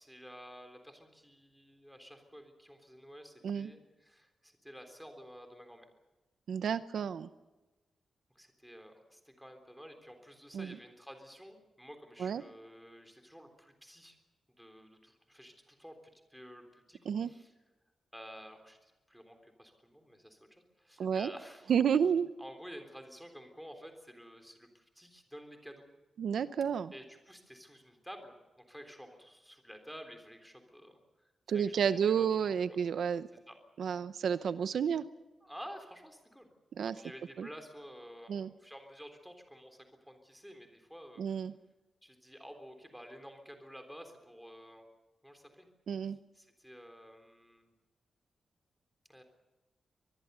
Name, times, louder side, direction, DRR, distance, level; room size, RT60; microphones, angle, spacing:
voice 1, 0.0-5.9 8.4-14.2 14.5-16.0 16.3-17.5 18.1-21.7 22.4-25.9 26.9-32.8 33.5-33.6 35.4-36.5 37.0-41.2 42.0-44.9 45.2-45.7 46.3-47.7 49.1-49.2, equal, ahead, 5 dB, 3.6 m, -51 dB
voice 2, 6.5-7.3 10.5-10.8 12.2-12.4 17.1-17.3 21.0-21.3 21.7-22.3 26.2-26.9 31.5-33.3 33.8-35.0 36.8-36.9 37.4-37.5 38.3-38.5 41.2-41.5 45.9-46.2, right 7 dB, 70° right, 13 dB, 0.7 m, -31 dB
24.5 x 20.5 x 6.8 m, 1.1 s
wide cardioid pair, 165°, 0 cm